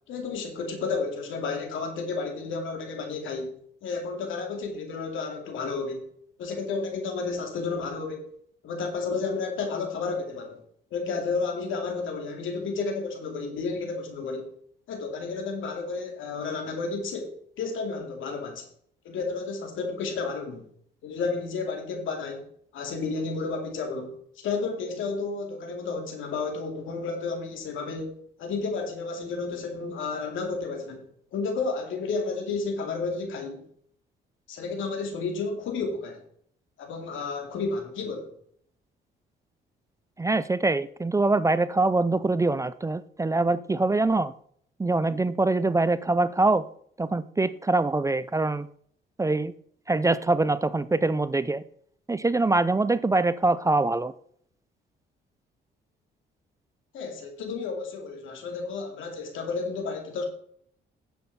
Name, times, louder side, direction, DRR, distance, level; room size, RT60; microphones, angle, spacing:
voice 1, 0.1-3.5 3.8-6.1 6.4-8.2 8.6-10.6 10.9-14.5 14.9-17.3 17.6-18.7 19.0-20.7 21.0-22.5 22.7-24.1 24.4-28.1 28.4-31.0 31.3-33.6 34.5-36.2 36.8-38.3 56.9-60.2, left 4 dB, 80° left, 3 dB, 2.6 m, -31 dB
voice 2, 40.2-44.3 44.8-46.6 47.0-48.7 49.2-49.5 49.9-51.6 52.1-54.1, right 2 dB, 15° right, 16 dB, 0.5 m, -24 dB
10.0 x 7.5 x 4.2 m, 0.63 s
cardioid pair, 90°, 20 cm